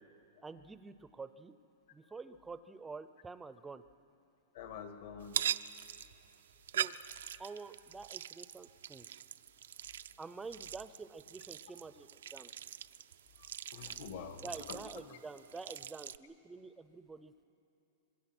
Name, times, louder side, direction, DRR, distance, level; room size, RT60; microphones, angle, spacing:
voice 1, 0.4-1.5 1.9-3.8 6.7-7.0 7.4-9.2 10.2-12.5 14.4-17.4, right 4 dB, 10° right, 13 dB, 0.5 m, -48 dB
voice 2, 4.5-5.4 13.7-15.2, left 6 dB, 60° left, 7 dB, 1.7 m, -47 dB
sound 1, 5.2-16.2, right 9 dB, 85° right, 0.5 m, -42 dB
25.0 x 22.0 x 6.1 m, 2.9 s
supercardioid pair, 155°, 0 cm